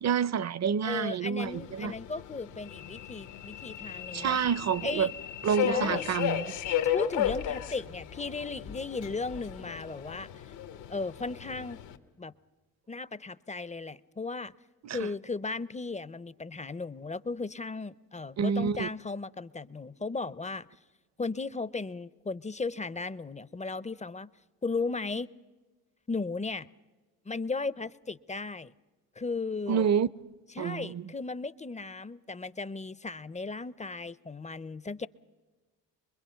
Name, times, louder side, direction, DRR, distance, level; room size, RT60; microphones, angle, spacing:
voice 1, 0.0-1.9 4.1-5.1 5.4-6.5 14.8-15.0 18.4-18.9 29.7-30.1 30.6-31.0, right 7 dB, 40° right, 0.7 m, -28 dB
voice 2, 0.8-4.4 4.8-5.1 5.6-6.1 6.9-10.5 10.9-11.8 12.2-12.3 12.9-14.5 14.9-20.7 21.2-24.3 24.6-25.3 26.1-26.7 27.3-28.7 29.2-29.9 30.6-35.1, left 3 dB, 15° left, 0.6 m, -36 dB
Subway metro underground, 1.4-12.0, left 10 dB, 85° left, 1.3 m, -35 dB
24.5 x 22.0 x 5.7 m
supercardioid pair, 60°, 44 cm